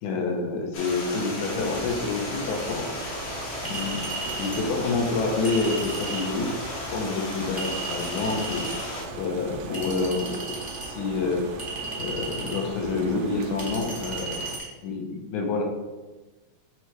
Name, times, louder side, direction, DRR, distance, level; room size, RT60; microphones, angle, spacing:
voice 1, 0.0-2.9 3.6-4.1 4.4-6.5 6.9-8.7 9.2-10.6 10.8-11.4 12.0-14.5 14.8-15.6, left 3 dB, 75° left, 2 dB, 2.3 m, -28 dB
Stream, 0.7-9.0, left 2 dB, 55° left, 1.6 m, -35 dB
sound 1, 1.5-14.6, right 3 dB, 75° right, 2.0 m, -38 dB
Chink clink, 3.6-4.6 5.4-6.3 7.6-8.8 9.7-10.9 11.6-12.6 13.6-14.7, right 3 dB, 15° right, 0.7 m, -35 dB
7.7 x 3.0 x 4.6 m, 1.1 s
omnidirectional pair, 3.6 m